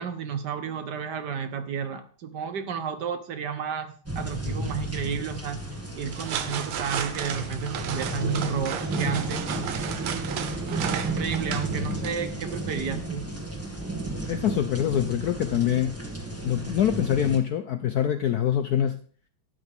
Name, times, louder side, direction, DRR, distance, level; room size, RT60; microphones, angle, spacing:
voice 1, 0.0-5.6 6.0-9.5 10.6-13.3, right 7 dB, 60° right, 10 dB, 1.3 m, -32 dB
sound 1, 4.1-17.4, right 2 dB, 5° right, 1.7 m, -33 dB
sound 2, 5.9-12.8, right 8 dB, 85° right, 1.8 m, -34 dB
voice 2, 14.3-15.9 16.4-18.9, left 10 dB, 70° left, 9 dB, 0.9 m, -24 dB
12.5 x 9.6 x 3.5 m, 0.43 s
omnidirectional pair, 2.3 m